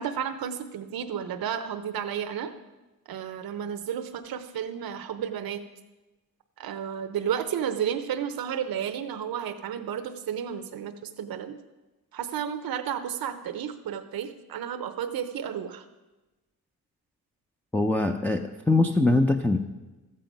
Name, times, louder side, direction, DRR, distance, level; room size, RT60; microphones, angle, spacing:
voice 1, 0.0-2.5 3.1-5.6 6.6-11.5 12.1-15.8, right 8 dB, 75° right, 8 dB, 0.7 m, -32 dB
voice 2, 17.7-19.6, left 2 dB, 5° left, 4 dB, 0.5 m, -22 dB
13.0 x 7.6 x 5.2 m, 1.1 s
cardioid pair, 95°, 36 cm